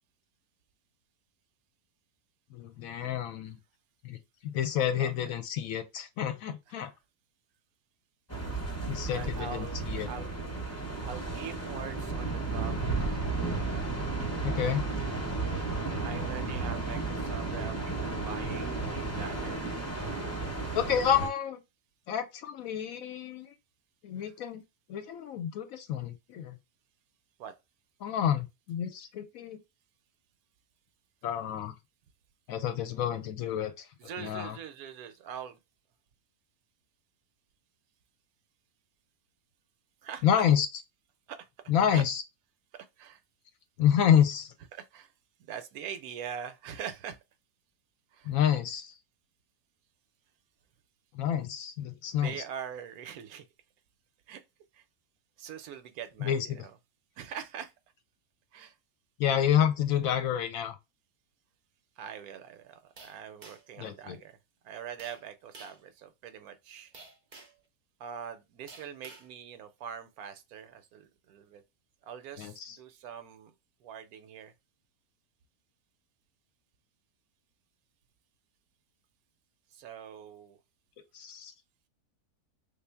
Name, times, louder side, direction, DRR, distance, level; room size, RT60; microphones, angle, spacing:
voice 1, 2.5-3.6 4.0-6.9 8.9-10.1 14.4-14.9 20.7-21.6 22.1-23.5 24.0-24.6 24.9-26.6 28.0-29.6 31.2-31.7 32.5-33.8 34.2-34.6 40.2-40.7 41.7-42.2 43.8-44.5 48.2-48.9 51.1-52.4 56.2-56.5 59.2-60.8 63.8-64.2 72.4-72.8 81.1-81.5, left 9 dB, 70° left, 0.9 m, -29 dB
sound 1, 8.3-21.3, right 3 dB, 15° left, 0.7 m, -33 dB
voice 2, 9.1-9.8 10.1-10.4 11.0-13.1 16.0-19.6 24.2-24.3 27.4-27.5 34.0-35.6 40.0-40.4 41.3-41.4 41.9-42.0 43.0-43.2 44.7-45.1 45.4-47.2 48.1-48.3 52.1-53.5 54.3-54.4 54.7-54.8 55.4-56.7 57.2-57.7 58.5-58.8 62.0-64.4 64.6-66.9 68.0-71.6 72.0-73.5 73.8-74.5 79.7-80.6, right 8 dB, 75° right, 1.0 m, -43 dB
sound 2, 63.0-63.8 65.0-65.2 65.5-65.8 66.9-67.6 68.7-69.3, right 3 dB, 55° right, 0.5 m, -50 dB
3.3 x 2.5 x 3.3 m
omnidirectional pair, 1.6 m